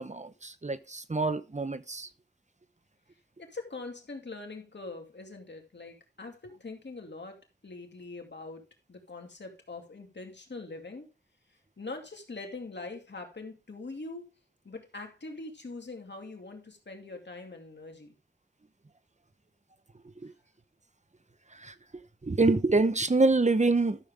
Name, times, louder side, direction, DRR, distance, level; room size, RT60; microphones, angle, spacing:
voice 1, 0.0-2.1 20.2-20.3 21.6-21.7 22.2-24.0, right 3 dB, 40° right, 0.9 m, -26 dB
voice 2, 3.4-8.6 8.9-11.1 11.5-14.2 14.6-18.1, left 3 dB, 80° left, 2.5 m, -43 dB
12.5 x 7.1 x 3.6 m
wide cardioid pair, 40°, 18 cm